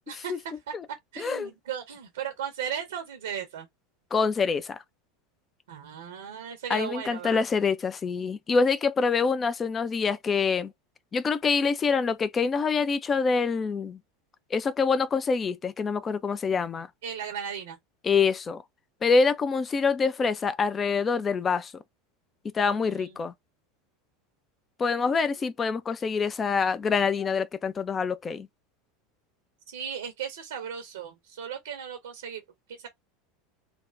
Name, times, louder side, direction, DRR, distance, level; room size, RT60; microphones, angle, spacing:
voice 1, 0.1-0.7 1.1-3.7 5.7-7.4 17.0-17.8 22.8-23.1 24.9-25.3 29.7-32.4 32.7-32.9, right 8 dB, 65° right, 0.7 m, -36 dB
voice 2, 1.2-1.5 4.1-4.8 6.7-10.7 11.1-14.0 14.5-16.9 18.0-18.6 19.0-21.8 22.4-23.3 24.8-28.5, left 5 dB, 25° left, 0.4 m, -26 dB
3.3 x 2.1 x 2.4 m
figure-of-eight pair, 80°, 0 cm